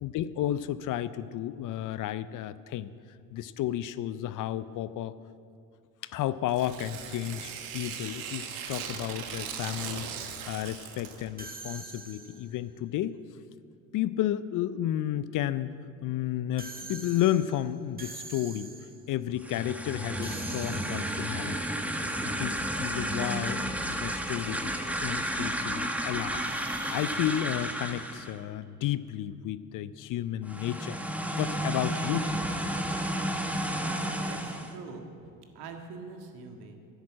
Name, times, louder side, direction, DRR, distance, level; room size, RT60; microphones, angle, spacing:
voice 1, 0.0-2.9 3.3-5.2 6.0-10.1 10.5-13.2 13.9-15.8 16.0-18.7 19.1-21.6 22.2-32.4, left 12 dB, 50° left, 15 dB, 0.6 m, -32 dB
Tearing, 6.5-11.3, right 7 dB, 85° right, 1.4 m, -39 dB
sound 1, 11.4-12.6 16.6-19.1 20.2-21.5 26.3-28.9, right 3 dB, 20° right, 1.6 m, -45 dB
sound 2, 19.3-28.4 30.4-34.8, right 1 dB, 5° right, 1.3 m, -32 dB
voice 2, 33.8-35.1 35.6-36.8, right 4 dB, 65° right, 4 dB, 1.9 m, -44 dB
10.5 x 10.5 x 7.5 m, 2.5 s
hypercardioid pair, 70°, 42 cm